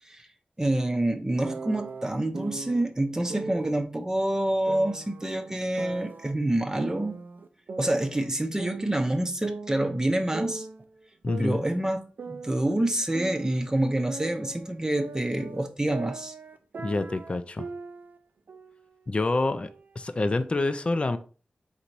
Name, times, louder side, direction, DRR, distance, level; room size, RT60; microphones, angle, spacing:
voice 1, 0.6-7.2 7.8-10.7 11.4-16.3, right 1 dB, 20° right, 0.6 m, -27 dB
sound 1, 1.4-2.8 3.3-3.8 4.7-6.3 6.8-8.3 8.6-10.8 11.3-13.7 14.1-18.2 18.5-18.8 19.3-20.3, right 4 dB, 75° right, 0.4 m, -39 dB
voice 2, 11.2-11.6 16.8-17.7 19.1-19.7 20.0-21.2, left 2 dB, 35° left, 0.4 m, -27 dB
4.0 x 2.7 x 4.5 m
wide cardioid pair, 65°, 3 cm